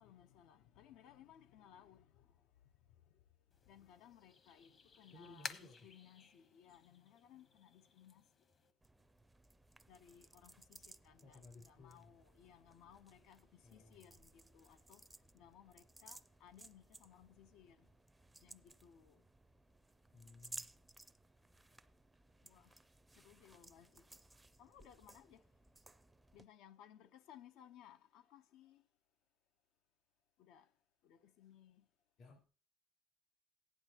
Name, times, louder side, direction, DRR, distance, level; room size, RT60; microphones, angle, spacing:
voice 1, 0.0-2.3 3.7-8.2 9.9-15.0 15.3-17.9 18.4-19.2 22.4-22.7 23.2-24.0 24.6-25.4 26.3-28.8 30.4-30.7 31.0-31.8, left 10 dB, 75° left, 0.9 m, -62 dB
sound 1, 3.5-8.7, left 5 dB, 35° left, 1.1 m, -54 dB
voice 2, 5.1-5.8 11.2-12.1 13.6-14.1 20.1-20.7 32.2-32.4, left 2 dB, 55° left, 4.4 m, -59 dB
sound 2, 8.8-26.4, right 2 dB, 10° right, 0.5 m, -59 dB
15.5 x 10.5 x 3.0 m
cardioid pair, 130°, 0 cm